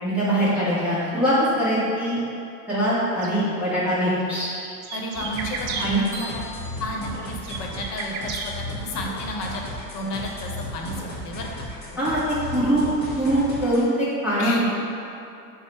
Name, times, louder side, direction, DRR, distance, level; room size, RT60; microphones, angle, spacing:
voice 1, 0.0-2.2 2.7-4.5 5.8-6.0 12.0-12.2 12.5-14.6, right 1 dB, 5° right, -11 dB, 0.6 m, -22 dB
voice 2, 0.5-0.8 4.9-6.4 6.8-8.5 8.8-9.6 9.9-11.5 14.4-14.6, left 1 dB, 75° left, 0 dB, 0.8 m, -32 dB
sound 1, 3.2-3.3 4.2-5.9 7.0-8.5, right 6 dB, 50° right, 0.5 m, -33 dB
sound 2, 5.1-13.8, left 1 dB, 20° left, 0.9 m, -35 dB
sound 3, 6.1-8.0, left 1 dB, 25° right, 1.3 m, -42 dB
4.5 x 2.0 x 4.2 m, 2.7 s
supercardioid pair, 130°, 48 cm